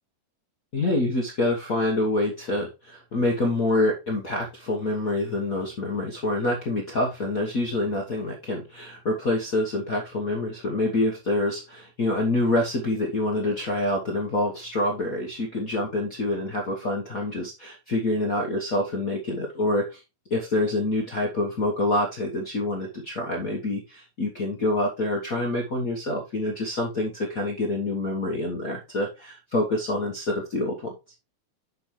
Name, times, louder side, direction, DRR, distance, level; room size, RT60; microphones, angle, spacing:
voice 1, 0.7-20.0 20.3-30.9, left 2 dB, 75° left, 0 dB, 0.7 m, -26 dB
7.9 x 6.1 x 3.2 m, 0.25 s
omnidirectional pair, 3.7 m